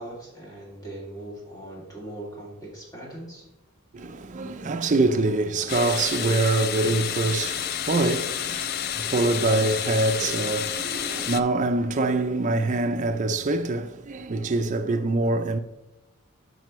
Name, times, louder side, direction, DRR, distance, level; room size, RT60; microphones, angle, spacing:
voice 1, 0.0-3.4, right 1 dB, 15° left, 2.5 m, -40 dB
voice 2, 3.9-15.6, right 2 dB, 35° right, 0.4 m, -25 dB
sound 1, 5.7-11.4, left 10 dB, 45° left, 0.3 m, -30 dB
9.1 x 5.9 x 3.1 m
head